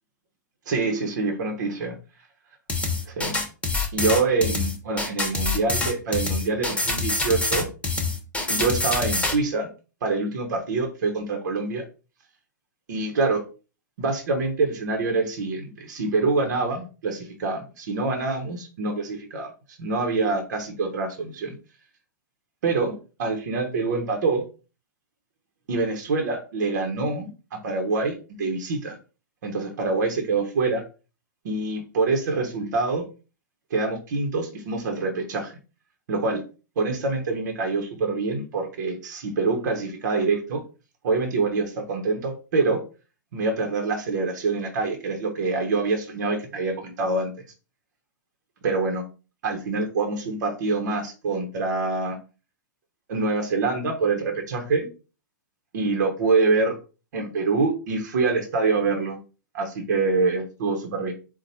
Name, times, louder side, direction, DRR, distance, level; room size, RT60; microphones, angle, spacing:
voice 1, 0.7-2.0 3.1-3.4 3.9-7.7 8.5-9.7 10.0-11.8 12.9-13.4 14.0-21.5 22.6-22.9 23.2-24.4 25.7-29.0 29.4-30.8 31.4-33.1 33.7-35.5 36.1-36.4 36.8-40.6 41.0-42.8 43.3-47.3 48.6-49.0 49.4-52.2 53.1-54.9 55.7-56.8 57.1-59.2 59.5-61.1, right 3 dB, 60° right, 3 dB, 1.0 m, -25 dB
sound 1, 2.7-9.4, left 3 dB, 10° left, 1.1 m, -25 dB
4.1 x 2.4 x 4.2 m, 0.33 s
hypercardioid pair, 110°, 11 cm